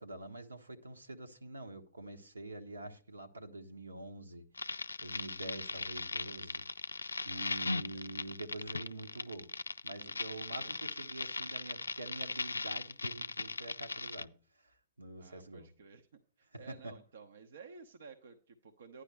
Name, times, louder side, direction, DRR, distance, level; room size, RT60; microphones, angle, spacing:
voice 1, 0.0-4.4 5.0-6.6 7.2-9.5 9.8-14.3 15.0-15.7 16.7-16.9, right 2 dB, 85° right, 1.4 m, -46 dB
sound 1, 4.6-14.2, left 3 dB, 85° left, 0.3 m, -39 dB
voice 2, 10.3-10.7 15.2-19.0, right 5 dB, 65° right, 0.9 m, -54 dB
11.5 x 9.8 x 3.3 m
figure-of-eight pair, 110°, 0 cm